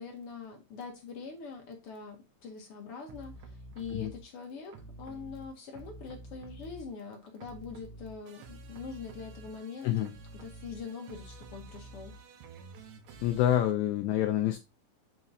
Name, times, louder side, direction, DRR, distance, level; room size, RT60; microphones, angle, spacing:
voice 1, 0.0-9.9 10.3-12.1, left 5 dB, 60° left, 1.7 m, -43 dB
sound 1, 3.1-4.2 4.7-7.1 7.4-13.7, right 2 dB, 70° right, 2.1 m, -49 dB
voice 2, 13.2-14.6, left 12 dB, 80° left, 1.8 m, -27 dB
7.4 x 4.9 x 2.7 m
omnidirectional pair, 3.5 m